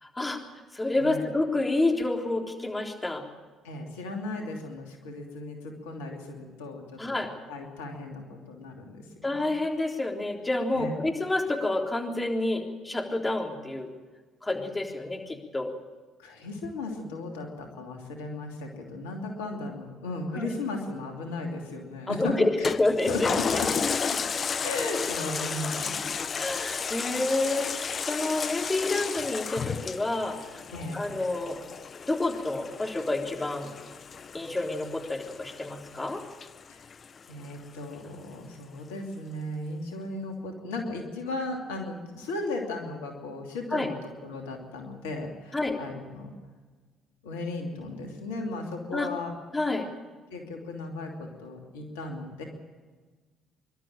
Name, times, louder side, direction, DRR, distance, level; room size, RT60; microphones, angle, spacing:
voice 1, 0.7-3.2 7.0-7.3 9.2-13.9 14.4-15.7 20.3-20.5 22.1-23.6 26.3-30.6 30.9-31.6 32.1-33.7 34.3-36.2 43.7-43.9 45.5-45.8 48.9-49.1 49.5-49.9, left 2 dB, 20° left, 2 dB, 3.7 m, -29 dB
voice 2, 3.6-7.2 7.5-9.5 10.7-11.0 16.2-22.3 23.1-23.7 24.6-26.0 30.7-31.0 36.7-36.8 37.3-43.9 44.2-46.3 47.2-49.3 50.3-52.4, left 2 dB, 85° left, 2 dB, 2.9 m, -36 dB
Toilet flush, 22.6-37.5 37.9-38.0, left 6 dB, 45° left, 0.8 m, -33 dB
25.5 x 12.5 x 9.0 m, 1.4 s
hypercardioid pair, 55°, 0 cm